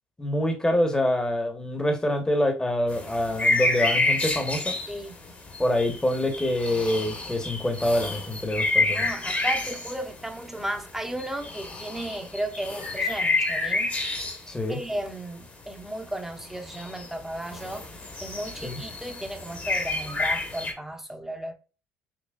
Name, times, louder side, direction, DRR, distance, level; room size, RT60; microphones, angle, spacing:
voice 1, 0.2-4.8 5.6-9.1 14.5-14.8 18.6-18.8, left 1 dB, 15° left, 1.2 m, -26 dB
sound 1, 2.9-14.6 14.9-15.0 15.7-15.8 16.1-16.2 16.4-17.1 17.4-20.7, left 2 dB, 30° left, 1.4 m, -29 dB
voice 2, 4.9-5.2 8.8-13.9 14.7-21.5, right 1 dB, 5° right, 1.0 m, -35 dB
6.2 x 3.1 x 2.4 m
supercardioid pair, 80°, 6 cm